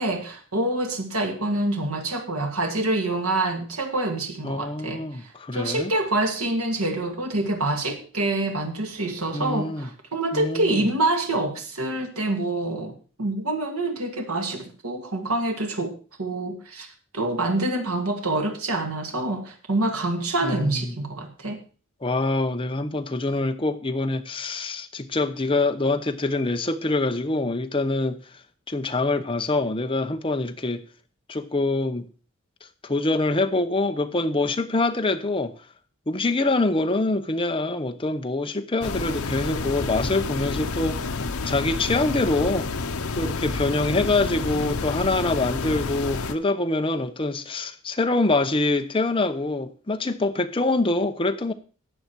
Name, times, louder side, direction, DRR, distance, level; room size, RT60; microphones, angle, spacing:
voice 1, 0.0-16.9 17.1-21.6, right 2 dB, 85° right, 2.2 m, -26 dB
voice 2, 4.4-5.9 9.3-9.9 10.3-10.8 20.4-20.9 22.0-28.2 28.7-30.8 31.3-32.1 32.8-35.5 36.1-41.1 41.5-42.7 43.1-51.5, left 2 dB, 25° left, 0.9 m, -25 dB
sound 1, 38.8-46.3, left 3 dB, 80° left, 0.9 m, -29 dB
13.5 x 8.6 x 4.7 m
head